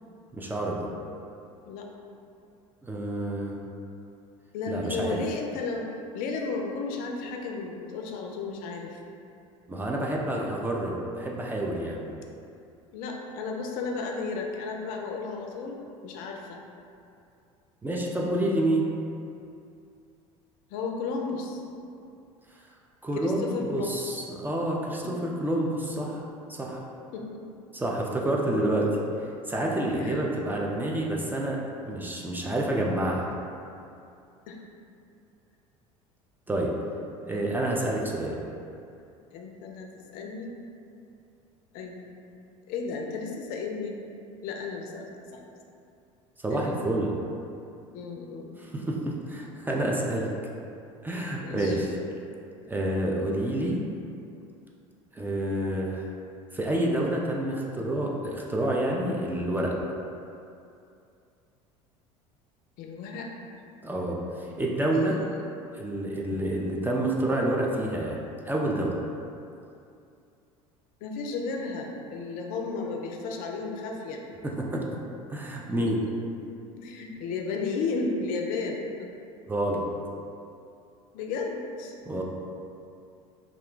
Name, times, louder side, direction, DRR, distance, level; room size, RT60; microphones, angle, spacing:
voice 1, 0.3-0.9 2.8-3.6 4.7-5.2 9.7-12.0 17.8-18.8 23.0-26.2 26.5-26.8 27.7-29.0 29.5-33.3 36.5-36.7 37.2-38.4 46.4-47.1 48.6-50.3 51.0-52.0 52.6-53.8 55.1-56.1 56.5-59.8 63.8-65.2 65.7-69.0 74.4-74.8 75.3-76.0 79.5-79.8 82.1-82.2, right 1 dB, 10° right, -2 dB, 0.4 m, -28 dB
voice 2, 4.5-5.9 6.1-9.0 12.9-16.6 20.7-21.6 23.2-24.0 27.1-27.4 29.7-30.3 34.5-34.6 37.3-37.4 37.8-38.2 39.3-40.6 41.7-42.1 42.7-44.0 44.4-45.4 46.5-46.7 47.9-48.6 51.4-51.8 62.8-63.3 64.9-65.2 65.6-65.7 66.2-66.4 71.0-74.2 76.8-79.1 81.1-82.0, left 4 dB, 60° left, 1 dB, 0.4 m, -34 dB
2.4 x 2.2 x 3.6 m, 2.6 s
hypercardioid pair, 75°, 17 cm